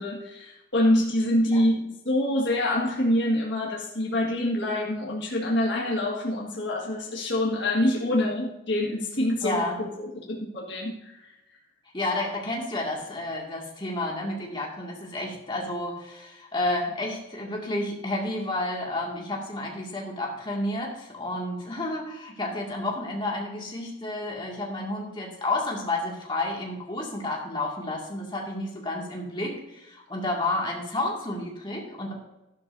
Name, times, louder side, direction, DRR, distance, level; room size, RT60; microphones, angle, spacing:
voice 1, 0.0-11.2, left 1 dB, 55° left, -4 dB, 1.8 m, -26 dB
voice 2, 9.4-9.8 11.9-32.1, left 2 dB, 25° left, -2 dB, 2.2 m, -31 dB
12.5 x 11.5 x 2.7 m, 0.94 s
head